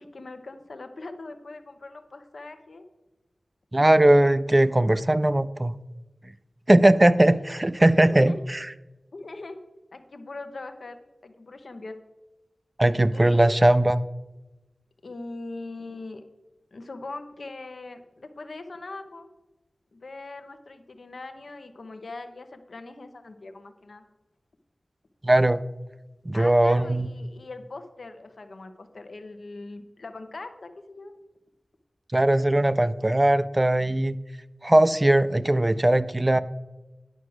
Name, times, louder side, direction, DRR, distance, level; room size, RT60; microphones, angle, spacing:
voice 1, 0.0-2.8 8.0-8.4 9.1-9.6 9.9-12.0 13.1-13.6 15.0-16.2 16.7-19.3 19.9-24.1 26.3-31.2, left 2 dB, 80° left, 7 dB, 0.8 m, -41 dB
voice 2, 3.7-5.8 6.7-8.7 12.8-14.0 25.2-25.6 26.3-27.1 32.1-34.2 34.6-36.4, right 1 dB, 25° right, 14 dB, 0.4 m, -19 dB
9.9 x 4.8 x 6.2 m, 1.1 s
wide cardioid pair, 55°, 0 cm